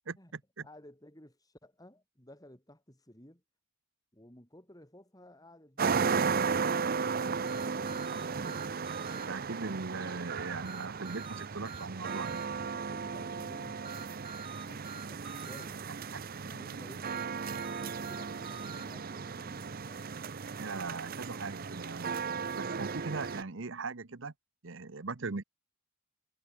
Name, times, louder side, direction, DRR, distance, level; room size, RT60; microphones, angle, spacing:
voice 1, 0.1-0.7 9.1-12.4 16.1-16.2 20.6-22.2 22.5-24.3 24.6-25.4, right 4 dB, 60° right, 1.0 m, -39 dB
voice 2, 0.6-3.4 4.1-9.0 12.6-14.3 14.6-15.9 16.4-17.5 17.8-20.2, left 1 dB, 15° left, 5.8 m, -55 dB
sound 1, 5.8-23.4, right 5 dB, 45° right, 0.6 m, -35 dB
sound 2, 7.5-9.3 10.7-12.5 13.9-15.7 17.0-18.9, right 5 dB, 25° right, 1.5 m, -46 dB
head